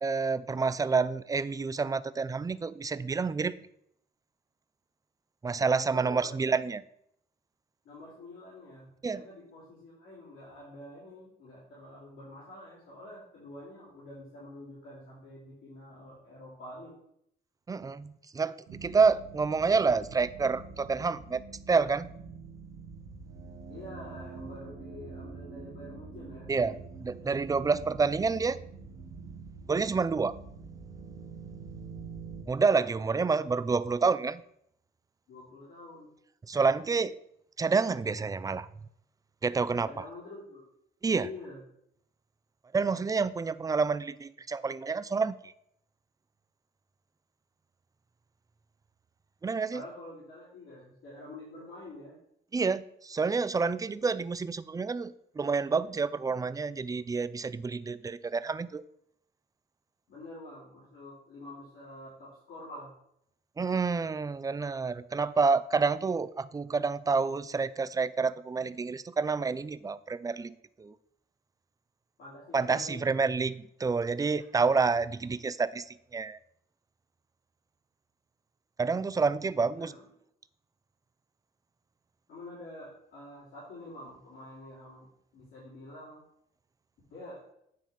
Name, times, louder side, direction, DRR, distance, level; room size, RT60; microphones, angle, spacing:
voice 1, 0.0-3.5 5.4-6.8 9.0-9.2 17.7-18.5 18.8-21.4 21.7-22.1 26.5-26.8 27.0-28.6 29.7-30.4 32.5-34.4 36.5-37.2 37.6-38.7 39.4-39.9 41.0-41.3 42.7-45.4 49.4-49.8 52.5-58.8 63.6-70.9 72.5-75.9 76.1-76.4 78.8-79.9, right 4 dB, 20° right, 15 dB, 0.4 m, -28 dB
voice 2, 5.9-6.4 7.8-17.0 23.7-26.5 35.3-36.1 39.8-40.7 41.2-41.6 49.7-52.2 60.1-62.9 72.2-73.2 79.8-80.0 82.3-86.2 87.1-87.4, left 1 dB, 80° left, -9 dB, 3.4 m, -47 dB
sound 1, 18.7-32.4, right 4 dB, 80° right, 1.2 m, -45 dB
9.4 x 3.4 x 5.8 m, 0.73 s
cardioid pair, 90°, 20 cm